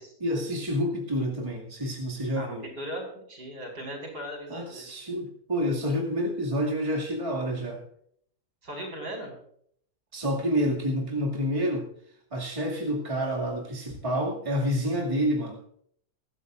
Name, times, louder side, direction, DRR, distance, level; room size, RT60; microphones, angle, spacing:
voice 1, 0.2-2.7 4.5-7.8 10.1-11.9 12.3-15.6, equal, 20° right, -2 dB, 2.3 m, -28 dB
voice 2, 2.3-4.9 8.6-9.4, equal, 80° right, 0 dB, 5.6 m, -38 dB
22.5 x 14.0 x 2.5 m, 0.66 s
omnidirectional pair, 1.7 m